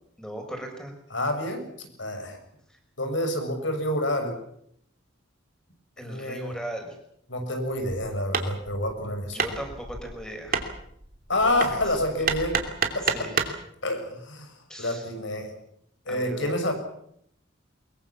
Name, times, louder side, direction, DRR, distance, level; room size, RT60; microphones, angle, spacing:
voice 1, 0.2-0.9 6.0-6.9 9.3-10.6 11.3-11.5 13.1-13.4 14.7-15.0 16.1-16.7, right 1 dB, 5° left, 3 dB, 6.0 m, -38 dB
voice 2, 1.1-2.4 3.0-4.3 6.0-6.6 7.3-9.5 11.3-12.6 12.9-13.3 13.8-15.5 16.1-16.7, left 1 dB, 65° left, 6 dB, 6.6 m, -28 dB
Hammer, 8.3-13.6, right 5 dB, 45° right, 2.9 m, -30 dB
23.5 x 22.5 x 7.3 m, 0.72 s
head